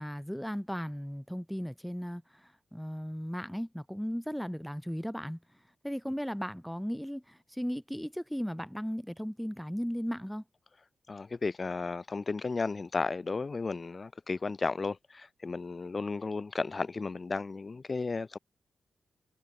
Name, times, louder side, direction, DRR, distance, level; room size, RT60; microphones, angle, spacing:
voice 1, 0.0-5.4 5.8-10.4, equal, ahead, 1.9 m, -36 dB
voice 2, 11.1-18.4, left 4 dB, 45° left, 0.5 m, -34 dB
supercardioid pair, 45°, 0 cm